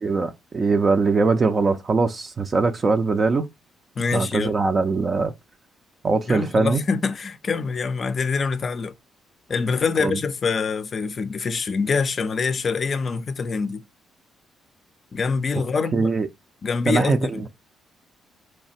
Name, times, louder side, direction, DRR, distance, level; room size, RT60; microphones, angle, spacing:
voice 1, 0.0-3.5 4.1-5.3 6.0-6.8 10.0-10.2 15.9-16.3 16.9-17.2, right 4 dB, 35° right, 0.4 m, -21 dB
voice 2, 4.0-4.5 6.3-8.9 9.5-13.8 15.1-16.1 16.6-17.5, left 5 dB, 45° left, 0.4 m, -25 dB
4.1 x 3.2 x 2.7 m
cardioid pair, 90°, 0 cm